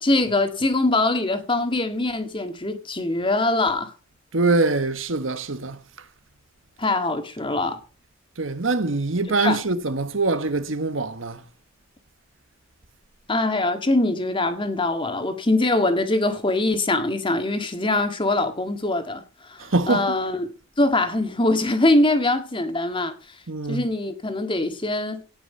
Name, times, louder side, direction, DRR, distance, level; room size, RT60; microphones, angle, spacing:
voice 1, 0.0-3.9 6.8-7.8 9.4-9.6 13.3-19.2 19.5-20.5 20.8-23.1 23.7-25.2, left 2 dB, 25° left, 1.9 m, -23 dB
voice 2, 4.3-5.8 8.4-11.4 19.6-20.2 23.5-23.9, right 3 dB, 85° right, 1.4 m, -24 dB
18.0 x 6.2 x 5.5 m
head